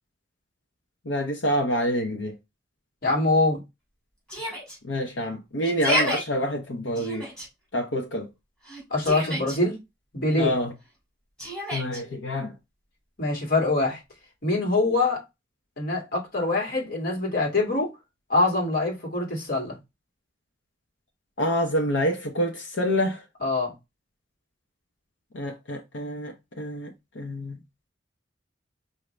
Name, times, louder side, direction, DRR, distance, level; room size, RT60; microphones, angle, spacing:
voice 1, 1.0-2.3 4.8-7.3 7.7-8.3 10.4-10.7 11.7-12.5 21.4-23.2 25.3-27.6, equal, 85° left, 0.8 m, -27 dB
voice 2, 3.0-3.6 8.9-9.8 10.1-10.5 13.2-14.0 14.4-15.2 15.8-17.9 18.3-19.8 23.4-23.7, left 2 dB, 55° left, 2.1 m, -24 dB
Yell, 4.3-4.8 5.6-6.2 6.9-7.5 8.6-9.6 11.4-12.0, equal, 5° left, 2.5 m, -29 dB
4.9 x 2.8 x 3.2 m
head